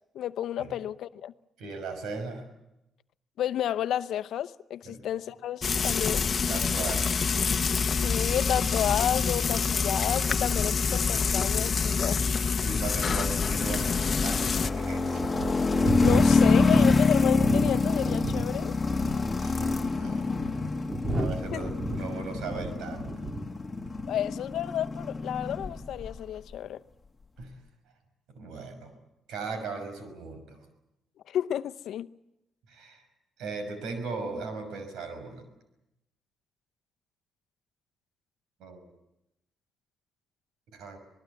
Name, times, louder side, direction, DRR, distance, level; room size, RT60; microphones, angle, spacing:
voice 1, 0.1-1.3 3.4-6.3 7.9-12.2 16.0-18.7 21.5-21.8 24.1-26.8 31.3-32.1, left 11 dB, 75° left, 0.8 m, -31 dB
voice 2, 1.6-2.5 4.8-5.0 6.5-7.1 12.6-15.4 19.3-20.6 21.1-23.1 27.4-27.6 28.3-28.9 29.3-30.6 32.7-33.0 33.4-35.4 38.6-38.9 40.7-41.0, right 4 dB, 80° right, 6.0 m, -38 dB
Frying (food), 5.6-14.7, left 5 dB, 40° left, 1.0 m, -27 dB
sound 1, 13.0-26.2, left 3 dB, 25° left, 1.8 m, -27 dB
sound 2, 13.0-13.1 13.7-13.8 14.4-14.5 15.2-18.5 18.8-19.3 20.0-23.5 23.8-24.1, right 1 dB, 30° right, 3.2 m, -33 dB
25.5 x 20.0 x 8.4 m
cardioid pair, 90°, 0 cm